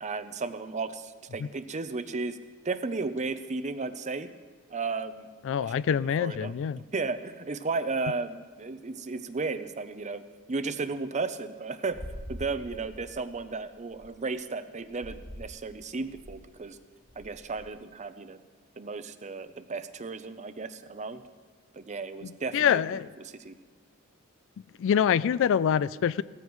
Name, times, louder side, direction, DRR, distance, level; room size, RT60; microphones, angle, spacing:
voice 1, 0.0-2.4 2.6-4.3 4.7-5.3 5.6-6.6 6.9-10.2 10.5-12.0 12.3-16.8 17.2-18.4 18.8-21.2 21.7-22.8 23.2-23.5, right 3 dB, 30° right, 11 dB, 0.6 m, -34 dB
voice 2, 5.5-6.8 22.5-23.1 24.8-26.2, left 8 dB, 60° left, 18 dB, 0.3 m, -25 dB
sound 1, 11.9-14.1 14.9-15.6 15.9-16.5 17.0-17.7, equal, 35° left, 3.8 m, -44 dB
18.0 x 14.5 x 3.1 m, 1.5 s
head